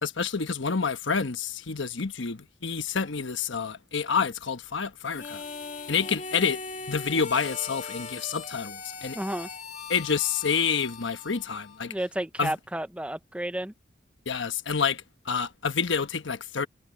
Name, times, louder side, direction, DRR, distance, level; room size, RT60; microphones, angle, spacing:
voice 1, 0.0-5.4 5.9-6.6 6.9-9.2 9.9-11.9 12.4-12.5 14.3-16.7, left 6 dB, 75° left, 1.1 m, -28 dB
Harmonica, 5.1-12.0, left 4 dB, 40° left, 2.5 m, -40 dB
voice 2, 9.1-9.5 11.9-13.7, right 1 dB, 5° right, 0.5 m, -32 dB
head